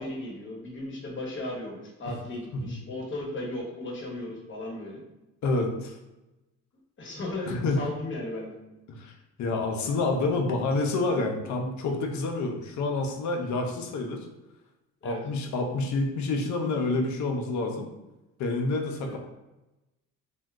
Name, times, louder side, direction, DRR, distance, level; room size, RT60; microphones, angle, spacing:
voice 1, 0.0-5.0 7.0-8.6 15.0-15.2 19.0-19.2, left 1 dB, 40° left, -3 dB, 1.1 m, -36 dB
voice 2, 5.4-6.0 7.5-7.8 8.9-9.1 9.4-14.3 15.0-17.9 18.4-19.2, left 3 dB, 70° left, 2 dB, 0.6 m, -28 dB
2.6 x 2.2 x 3.5 m, 0.99 s
cardioid pair, 90°, 30 cm